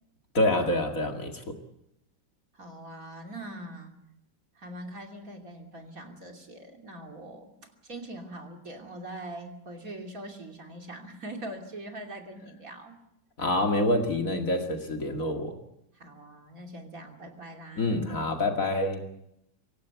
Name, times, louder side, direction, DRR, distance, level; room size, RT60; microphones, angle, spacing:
voice 1, 0.3-1.4 13.4-15.6 17.8-19.0, left 1 dB, 50° left, 4 dB, 2.6 m, -27 dB
voice 2, 2.5-3.9 4.5-13.0 15.9-18.0, right 1 dB, 50° right, 3 dB, 3.3 m, -42 dB
25.5 x 17.0 x 8.2 m, 0.79 s
omnidirectional pair, 1.9 m